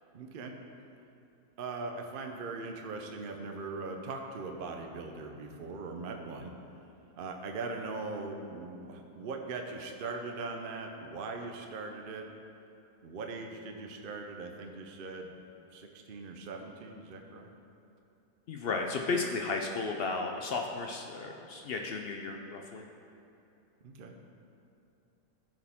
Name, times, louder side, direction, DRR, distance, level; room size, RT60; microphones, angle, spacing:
voice 1, 0.1-0.5 1.6-6.5 7.1-12.3 13.0-15.3 15.7-17.5 23.8-24.1, right 3 dB, 55° right, 3 dB, 0.6 m, -40 dB
voice 2, 18.5-22.9, left 3 dB, 85° left, 2 dB, 0.5 m, -34 dB
13.5 x 4.7 x 3.5 m, 2.8 s
omnidirectional pair, 1.6 m